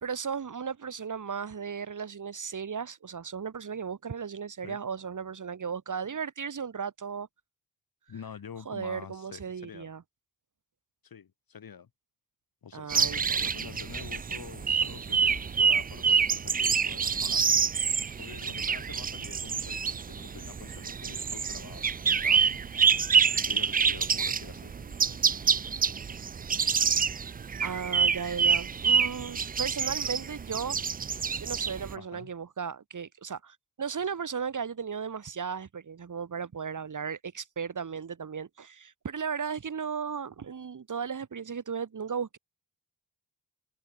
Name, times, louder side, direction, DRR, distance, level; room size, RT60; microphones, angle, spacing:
voice 1, 0.0-7.3 8.7-10.0 12.7-13.5 27.6-30.8 31.4-42.4, right 6 dB, 45° right, 2.1 m, -36 dB
voice 2, 8.1-9.9 11.0-11.9 12.6-17.6 18.2-22.6 23.5-24.7 31.9-32.3, left 7 dB, 55° left, 2.7 m, -47 dB
sound 1, 12.9-31.9, right 6 dB, 20° right, 0.4 m, -27 dB
sound 2, 13.2-27.8, left 3 dB, 30° left, 7.0 m, -57 dB
supercardioid pair, 55°, 41 cm